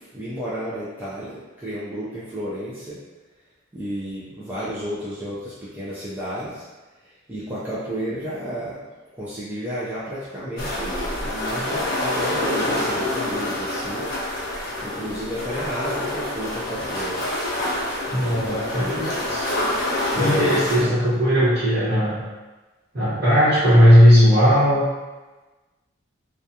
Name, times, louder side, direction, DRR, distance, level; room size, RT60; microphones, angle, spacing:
voice 1, 0.0-3.0 3.7-6.6 7.3-8.8 9.2-14.1 14.8-17.2 20.1-21.0, equal, 10° right, -11 dB, 0.4 m, -31 dB
sound 1, 10.6-20.8, left 1 dB, 45° left, 0.6 m, -27 dB
voice 2, 18.1-19.5 20.1-22.2 22.9-24.9, equal, 45° right, -14 dB, 1.0 m, -17 dB
2.3 x 2.2 x 2.7 m, 1.2 s
head